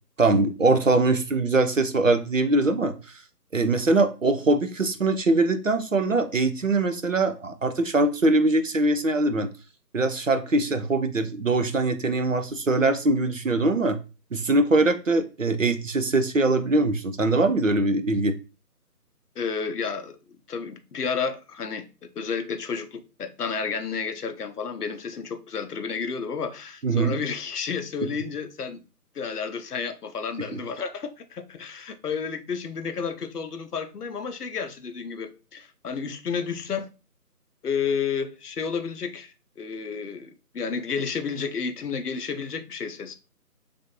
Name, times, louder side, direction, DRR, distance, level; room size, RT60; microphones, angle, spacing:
voice 1, 0.2-3.0 3.5-9.5 9.9-14.0 14.3-18.3 26.8-27.2, right 2 dB, 55° right, 0.5 m, -22 dB
voice 2, 19.4-20.2 20.5-21.9 22.2-28.8 29.1-36.9 37.6-43.1, left 6 dB, 70° left, 0.6 m, -31 dB
3.3 x 2.5 x 2.9 m
figure-of-eight pair, 165°, 48 cm